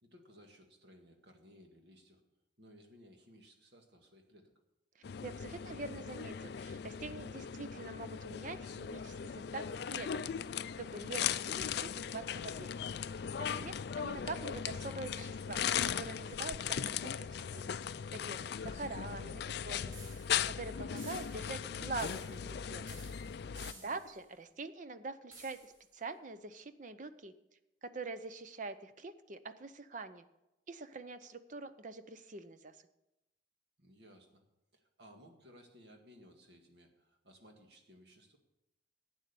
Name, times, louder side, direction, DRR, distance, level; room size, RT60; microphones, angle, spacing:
voice 1, 0.0-2.2 2.6-4.5 23.7-24.0 33.8-34.4 34.7-38.4, equal, 60° right, 4 dB, 1.9 m, -60 dB
sound 1, 5.0-23.7, left 8 dB, 55° left, 0.4 m, -38 dB
voice 2, 5.2-10.1 10.8-12.7 13.4-15.6 16.0-17.8 18.1-19.9 20.4-22.8 23.8-27.3 27.8-30.2 30.7-32.8, right 3 dB, 40° right, 11 dB, 0.7 m, -45 dB
Organ, 12.3-22.9, right 1 dB, 30° left, 0.7 m, -64 dB
sound 2, 19.9-20.5 21.0-21.6 22.0-22.6 22.9-24.2 25.3-25.8, right 2 dB, 85° right, 4.1 m, -54 dB
11.5 x 8.8 x 6.9 m, 0.93 s
head